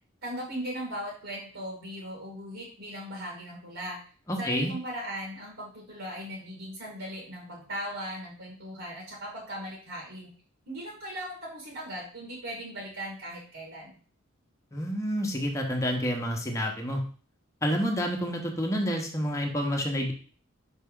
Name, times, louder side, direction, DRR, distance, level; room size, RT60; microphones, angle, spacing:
voice 1, 0.2-4.0 4.4-10.3 10.7-14.0, equal, 70° right, -2 dB, 1.9 m, -38 dB
voice 2, 4.3-4.7 14.7-17.0 17.6-20.1, equal, 15° left, 0 dB, 1.0 m, -29 dB
5.7 x 4.5 x 3.7 m, 0.42 s
head